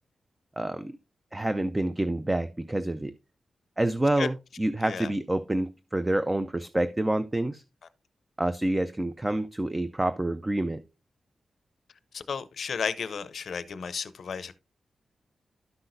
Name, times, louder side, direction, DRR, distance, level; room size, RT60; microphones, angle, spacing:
voice 1, 0.6-0.9 1.3-3.1 3.8-7.6 8.4-10.8, right 1 dB, 15° right, 0.4 m, -28 dB
voice 2, 12.1-14.5, left 6 dB, 65° left, 0.6 m, -33 dB
12.0 x 5.9 x 2.6 m
wide cardioid pair, 145°, 0 cm